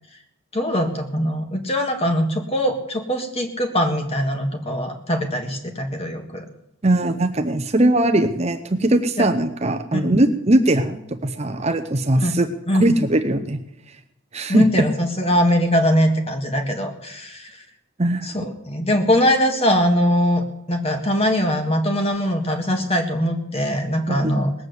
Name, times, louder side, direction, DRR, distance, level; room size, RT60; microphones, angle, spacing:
voice 1, 0.5-6.4 9.2-9.3 9.9-10.1 12.2-12.3 12.7-12.9 14.5-17.5 18.2-24.5, equal, 25° left, 5 dB, 1.7 m, -21 dB
voice 2, 6.8-12.5 12.8-13.6 14.3-14.8 18.0-18.5 24.1-24.3, right 1 dB, 30° right, 7 dB, 0.7 m, -20 dB
19.0 x 7.6 x 8.0 m, 0.84 s
head